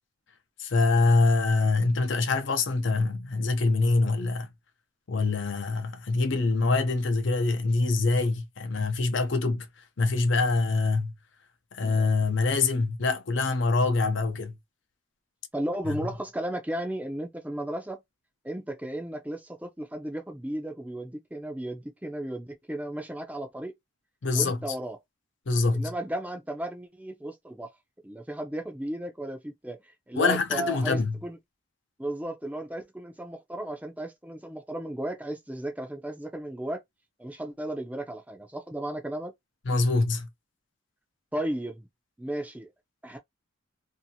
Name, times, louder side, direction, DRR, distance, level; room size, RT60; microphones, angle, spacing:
voice 1, 0.6-4.5 5.1-9.7 10.0-11.1 11.7-14.6 15.9-16.0 24.2-24.6 25.5-25.9 30.2-31.2 39.7-40.3, left 3 dB, 60° left, 0.6 m, -25 dB
voice 2, 15.5-18.0 18.4-23.7 24.3-25.0 25.7-27.7 28.0-31.4 32.0-36.8 37.2-39.3 41.3-41.9 42.2-42.7 43.0-43.2, right 1 dB, 5° right, 0.5 m, -34 dB
2.7 x 2.6 x 2.7 m
head